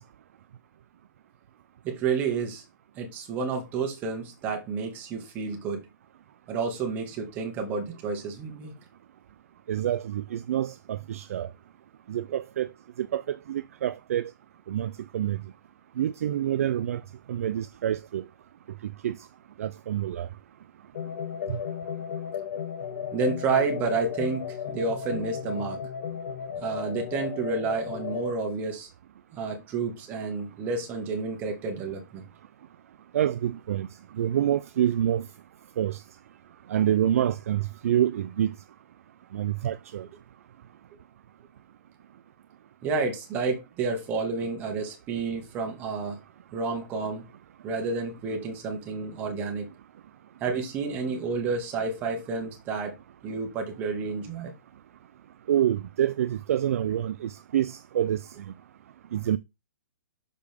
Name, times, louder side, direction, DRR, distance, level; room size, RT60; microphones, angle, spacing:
voice 1, 1.8-2.6 2.9-5.8 6.5-8.7 22.9-25.8 26.6-28.9 29.3-32.2 42.8-46.2 46.5-47.2 47.6-49.7 50.4-53.0 53.2-54.5, right 4 dB, 15° right, 1.6 m, -30 dB
voice 2, 9.7-11.5 12.1-12.7 13.0-14.3 14.7-15.4 16.0-17.0 17.3-18.2 19.0-19.1 19.6-20.3 21.5-21.6 33.1-33.9 34.2-35.2 35.8-36.0 36.7-38.5 39.3-40.0 55.5-58.2 59.1-59.4, right 11 dB, 45° right, 0.4 m, -27 dB
sound 1, 20.9-28.3, left 8 dB, 40° left, 0.8 m, -35 dB
6.6 x 5.1 x 3.5 m
hypercardioid pair, 165°, 11 cm